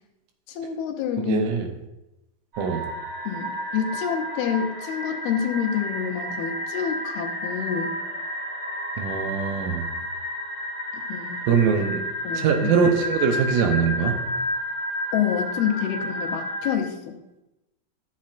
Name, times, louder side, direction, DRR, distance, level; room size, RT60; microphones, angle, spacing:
voice 1, 0.5-1.5 3.2-8.0 10.9-11.4 12.2-12.7 15.1-17.2, left 8 dB, 80° left, 3 dB, 2.8 m, -27 dB
voice 2, 1.3-1.7 2.6-2.9 9.0-9.9 11.5-12.0 12.3-14.2, right 6 dB, 75° right, 4 dB, 2.1 m, -22 dB
sound 1, 2.5-16.7, equal, 45° right, 4.1 m, -31 dB
13.5 x 7.5 x 2.5 m, 0.94 s
omnidirectional pair, 4.6 m